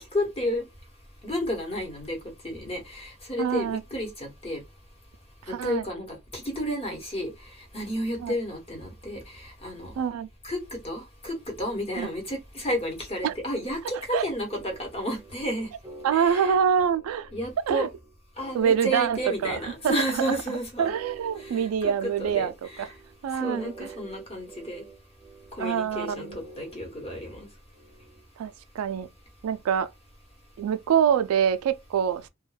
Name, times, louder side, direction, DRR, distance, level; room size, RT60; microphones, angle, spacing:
voice 1, 0.1-0.6 1.2-2.2 2.4-4.6 5.5-7.3 7.7-9.9 10.4-10.6 10.8-15.7 16.1-16.6 17.3-17.9 18.4-20.9 21.4-22.9 23.4-24.8 25.6-27.5, equal, 30° left, 1.0 m, -31 dB
voice 2, 3.4-3.8 5.5-5.8 8.2-8.3 10.0-10.3 12.0-12.1 13.2-13.3 14.1-14.2 16.0-17.3 17.7-17.9 18.5-19.6 19.8-19.9 20.8-22.5 22.8-22.9 23.2-23.9 25.6-26.2 28.4-29.1 29.4-29.9 30.6-32.3, right 8 dB, 80° right, 0.3 m, -25 dB
sound 1, 14.5-28.3, right 2 dB, 15° right, 0.6 m, -47 dB
2.3 x 2.1 x 3.2 m
head